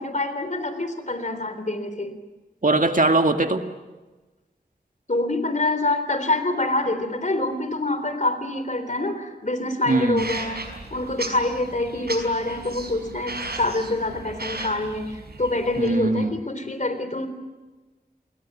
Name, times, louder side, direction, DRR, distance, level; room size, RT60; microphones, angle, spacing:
voice 1, 0.0-2.2 5.1-10.6 10.9-17.3, left 2 dB, 50° left, 10 dB, 3.7 m, -26 dB
voice 2, 2.6-3.6 9.9-10.3 15.8-16.4, right 2 dB, 55° right, 5 dB, 2.0 m, -21 dB
sound 1, 10.2-15.9, right 2 dB, 70° right, 5.2 m, -36 dB
29.0 x 21.5 x 7.6 m, 1.2 s
wide cardioid pair, 65°, 17 cm